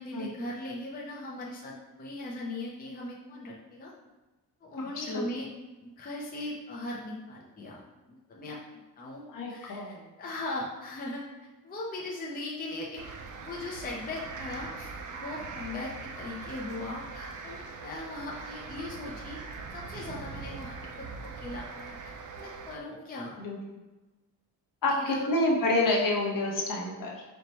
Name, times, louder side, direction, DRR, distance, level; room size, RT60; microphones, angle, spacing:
voice 1, 0.0-3.9 4.6-5.5 5.8-7.8 8.1-13.0 13.4-19.4 19.7-23.4 24.9-25.3, left 2 dB, 25° left, -3 dB, 0.5 m, -39 dB
voice 2, 4.8-5.2 9.3-10.0 23.4-23.6 24.8-27.2, left 2 dB, 55° left, 0 dB, 0.8 m, -28 dB
sound 1, 13.0-22.8, right 4 dB, 55° right, 0.5 m, -41 dB
4.4 x 2.2 x 4.0 m, 1.1 s
wide cardioid pair, 145°, 39 cm